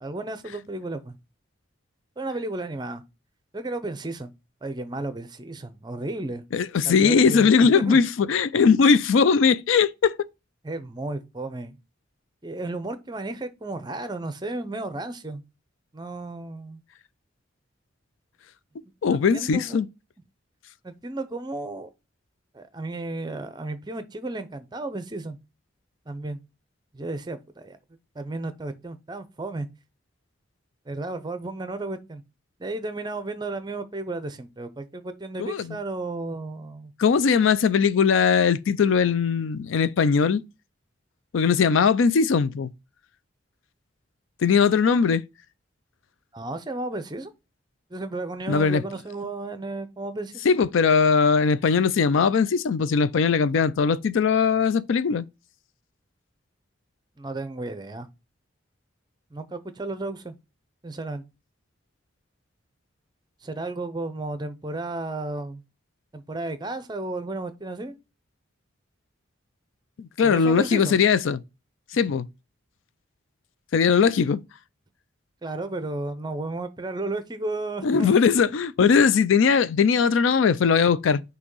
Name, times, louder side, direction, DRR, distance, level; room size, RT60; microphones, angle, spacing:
voice 1, 0.0-1.2 2.2-3.0 3.5-4.3 4.6-6.4 6.8-8.0 10.6-11.8 12.4-15.4 15.9-16.8 18.8-19.8 20.8-21.9 22.5-25.4 26.1-26.4 26.9-27.8 28.1-29.7 30.9-32.2 32.6-36.9 46.3-47.3 47.9-50.6 57.2-58.1 59.3-60.3 60.8-61.2 63.4-65.6 66.1-67.9 70.2-71.0 75.4-78.2, right 2 dB, 20° right, 0.6 m, -33 dB
voice 2, 6.5-10.2 19.0-19.9 35.4-35.8 37.0-40.4 41.3-42.7 44.4-45.2 48.5-48.8 50.4-55.3 70.0-71.4 71.9-72.3 73.7-74.4 77.8-81.2, left 5 dB, 80° left, 0.4 m, -20 dB
6.1 x 2.8 x 5.4 m
head